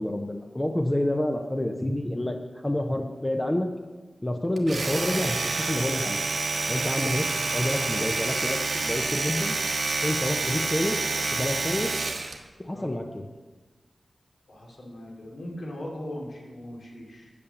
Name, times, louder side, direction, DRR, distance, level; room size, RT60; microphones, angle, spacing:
voice 1, 0.0-3.7 4.2-6.2 6.7-9.6 10.0-11.0 11.3-11.9 12.6-13.3, left 1 dB, 15° left, 3 dB, 0.6 m, -28 dB
Domestic sounds home sounds, 4.6-12.4, right 3 dB, 70° right, 1.2 m, -28 dB
voice 2, 14.5-17.3, left 1 dB, 75° left, -2 dB, 2.8 m, -39 dB
8.5 x 8.4 x 7.0 m, 1.3 s
wide cardioid pair, 110°, 0 cm